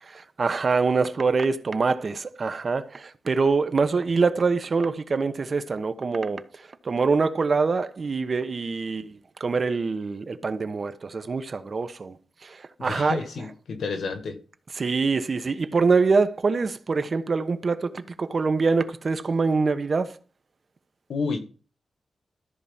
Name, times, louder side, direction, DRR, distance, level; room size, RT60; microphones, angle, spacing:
voice 1, 0.0-12.2 12.4-13.2 14.8-20.1, right 4 dB, 45° right, 1.1 m, -25 dB
voice 2, 12.8-14.4 21.1-21.4, left 4 dB, 80° left, 2.0 m, -30 dB
13.5 x 5.0 x 7.3 m
wide cardioid pair, 105°, 0 cm